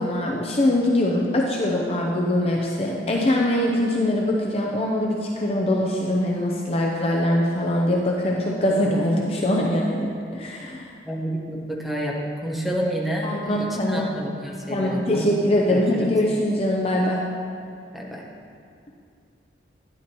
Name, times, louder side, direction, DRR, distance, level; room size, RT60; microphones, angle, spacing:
voice 1, 0.0-10.8 13.2-14.1 14.7-17.2, left 1 dB, 35° left, -1 dB, 0.6 m, -22 dB
voice 2, 11.0-15.3 15.7-16.1 17.9-18.2, equal, ahead, -3 dB, 1.1 m, -29 dB
11.5 x 10.5 x 3.0 m, 2.3 s
head